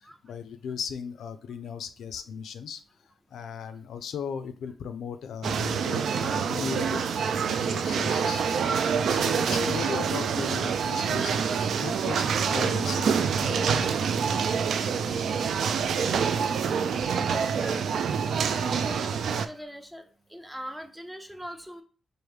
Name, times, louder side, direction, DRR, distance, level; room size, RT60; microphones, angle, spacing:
voice 1, 0.0-2.8 3.3-7.0 7.4-8.4 9.1-14.1, left 7 dB, 80° left, 11 dB, 0.4 m, -37 dB
sound 1, 5.4-19.5, right 6 dB, 65° right, 0.3 m, -26 dB
voice 2, 16.0-17.9 18.5-20.0 20.3-21.8, equal, 5° right, 6 dB, 0.5 m, -41 dB
4.7 x 2.5 x 3.2 m, 0.37 s
wide cardioid pair, 170°, 0 cm